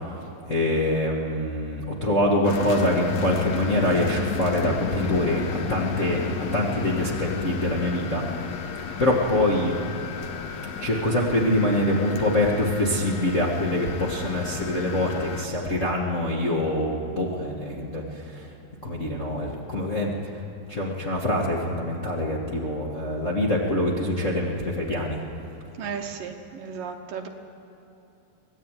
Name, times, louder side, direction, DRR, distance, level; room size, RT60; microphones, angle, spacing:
voice 1, 0.0-8.5 9.0-9.8 10.8-18.5 18.8-20.1 20.7-25.2, left 1 dB, 25° left, -3 dB, 1.7 m, -25 dB
sound 1, 2.4-15.5, left 6 dB, 70° left, 1.7 m, -33 dB
voice 2, 25.8-27.3, right 6 dB, 65° right, 4 dB, 2.6 m, -34 dB
25.0 x 18.0 x 9.4 m, 3.0 s
omnidirectional pair, 4.6 m